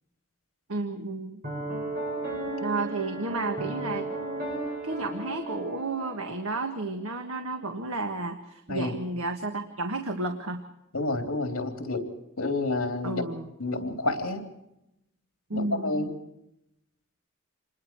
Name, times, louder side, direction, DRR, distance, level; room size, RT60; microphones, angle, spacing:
voice 1, 0.7-1.4 2.6-4.1 4.8-10.6 13.0-13.5 15.5-16.1, right 2 dB, 75° right, 5 dB, 1.6 m, -32 dB
Piano, 1.4-6.7, right 2 dB, 45° right, 7.6 m, -34 dB
voice 2, 10.9-12.0 12.4-13.2 13.6-14.4 15.5-16.1, left 2 dB, 65° left, 4 dB, 3.4 m, -29 dB
27.5 x 21.0 x 4.6 m, 0.84 s
head